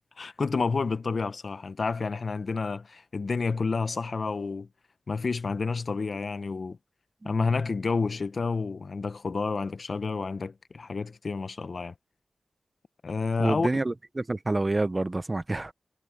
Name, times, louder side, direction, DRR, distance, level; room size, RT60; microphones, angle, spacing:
voice 1, 0.2-4.7 5.1-6.8 7.2-11.9 13.0-13.7, left 4 dB, 55° left, 0.8 m, -29 dB
voice 2, 13.4-15.7, right 2 dB, 25° right, 0.7 m, -28 dB
wide cardioid pair, 90°, 0 cm